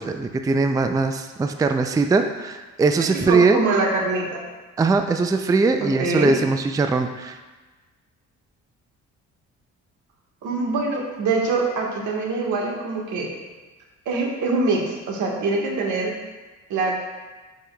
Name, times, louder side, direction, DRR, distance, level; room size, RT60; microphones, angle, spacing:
voice 1, 0.0-3.6 4.8-7.4, right 3 dB, 10° right, 7 dB, 0.3 m, -21 dB
voice 2, 3.0-4.4 5.8-6.4 10.4-13.3 14.0-16.1 16.7-16.9, right 3 dB, 80° right, -1 dB, 1.4 m, -24 dB
10.0 x 5.4 x 2.2 m, 1.2 s
cardioid pair, 90°, 30 cm